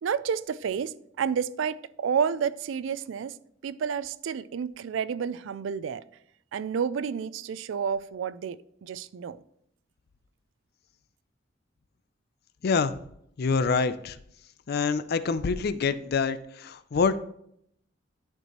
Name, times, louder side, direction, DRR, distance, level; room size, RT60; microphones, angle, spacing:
voice 1, 0.0-3.3 3.6-6.0 6.5-9.4, right 7 dB, 80° right, 0.3 m, -30 dB
voice 2, 12.6-12.9 13.4-14.2 14.7-17.2, left 5 dB, 55° left, 0.4 m, -26 dB
11.0 x 4.5 x 3.0 m
head